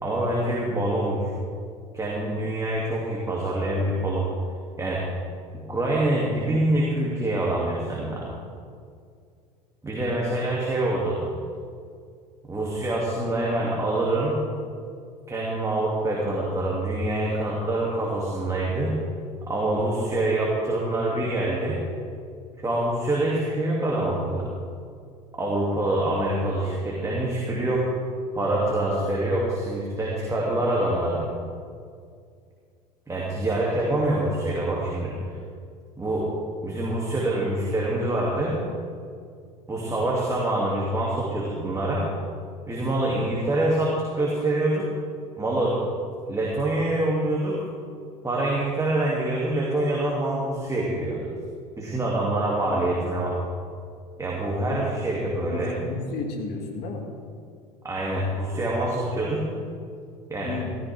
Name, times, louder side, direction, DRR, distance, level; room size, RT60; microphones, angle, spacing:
voice 1, 0.0-1.3 1.9-4.3 4.8-5.1 5.5-8.3 9.8-11.2 12.5-14.4 15.3-19.0 19.5-21.8 22.6-24.5 25.4-27.9 28.3-31.2 33.1-35.2 36.0-36.3 36.6-38.6 39.7-42.1 42.7-44.9 45.4-45.8 46.3-47.6 48.2-51.3 51.8-53.4 54.2-55.7 57.8-59.5 60.3-60.6, right 1 dB, 15° right, -4 dB, 2.6 m, -25 dB
voice 2, 55.5-57.1 60.4-60.7, left 4 dB, 55° left, 2 dB, 2.4 m, -33 dB
15.5 x 14.0 x 3.6 m, 2.2 s
hypercardioid pair, 75°, 20 cm